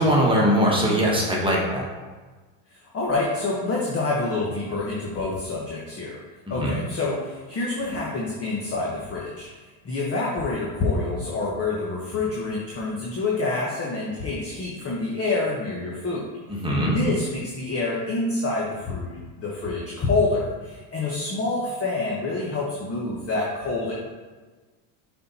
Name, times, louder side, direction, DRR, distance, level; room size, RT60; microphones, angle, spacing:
voice 1, 0.0-1.8 6.6-6.7 16.5-17.0, equal, 10° right, -4 dB, 1.6 m, -21 dB
voice 2, 2.7-6.2 6.5-9.5 9.8-16.3 16.8-23.9, left 3 dB, 30° left, -4 dB, 1.3 m, -27 dB
7.4 x 4.5 x 4.3 m, 1.3 s
cardioid pair, 120°, 49 cm